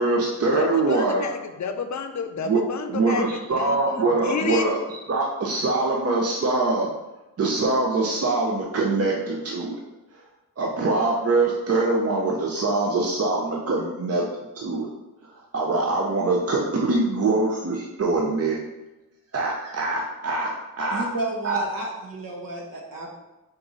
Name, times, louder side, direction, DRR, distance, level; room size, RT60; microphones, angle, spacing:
voice 1, 0.0-1.2 2.4-2.6 2.9-6.9 7.4-9.8 10.6-14.3 14.6-14.9 15.3-18.6 19.3-20.5 20.8-21.0 21.4-21.6, right 3 dB, 45° right, -2 dB, 0.7 m, -23 dB
voice 2, 0.5-4.6, left 6 dB, 55° left, 7 dB, 0.6 m, -30 dB
voice 3, 20.9-23.1, right 2 dB, 70° right, 0 dB, 1.1 m, -31 dB
4.6 x 2.6 x 3.8 m, 1.0 s
cardioid pair, 50°, 35 cm